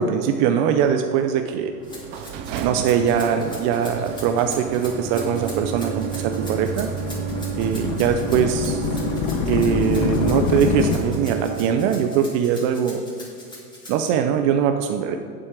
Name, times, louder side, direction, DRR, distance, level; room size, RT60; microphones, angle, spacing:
voice 1, 0.0-1.7 2.6-6.9 7.6-8.9 9.5-13.0 13.9-15.2, right 8 dB, 45° right, 6 dB, 0.7 m, -22 dB
Rattle (instrument), 1.8-14.1, left 1 dB, 10° left, 2.9 m, -42 dB
sound 1, 1.8-12.1, right 7 dB, 25° right, 0.3 m, -30 dB
sound 2, 4.1-11.0, left 7 dB, 40° left, 0.8 m, -27 dB
7.8 x 7.6 x 6.1 m, 2.2 s
hypercardioid pair, 115°, 48 cm